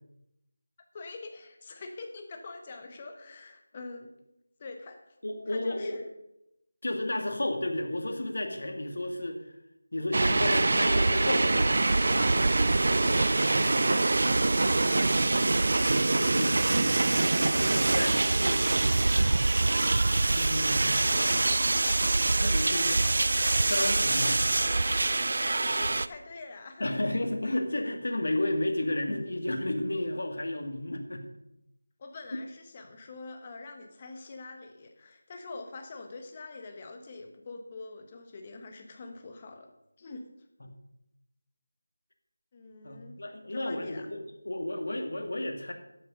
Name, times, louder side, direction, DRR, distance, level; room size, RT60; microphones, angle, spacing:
voice 1, 0.9-4.1 4.6-5.0 5.5-6.0 12.1-14.5 25.4-26.8 32.0-39.7 40.0-40.2 42.5-43.1 43.5-44.1, left 3 dB, 25° left, 5 dB, 1.4 m, -44 dB
voice 2, 5.2-6.0 6.8-9.4 9.9-11.8 14.6-14.8 15.8-18.6 20.3-21.2 22.0-23.1 23.7-24.4 26.8-31.2 40.6-40.7 42.8-44.2 44.4-45.7, left 1 dB, 65° left, 4 dB, 2.1 m, -32 dB
sound 1, 10.1-26.1, right 2 dB, 55° right, 0.5 m, -24 dB
12.0 x 8.5 x 5.3 m, 0.86 s
figure-of-eight pair, 165°, 0 cm